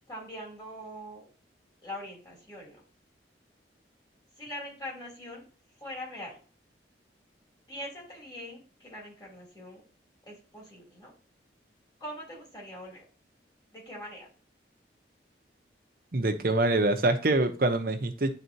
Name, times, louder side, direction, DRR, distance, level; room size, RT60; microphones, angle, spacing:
voice 1, 0.1-1.2 1.8-2.8 4.4-5.5 5.8-6.4 7.7-9.8 10.2-11.1 12.0-13.0 13.7-14.3, left 1 dB, 20° left, 3.0 m, -42 dB
voice 2, 16.1-18.3, right 2 dB, 55° right, 0.8 m, -25 dB
9.4 x 4.1 x 2.8 m
head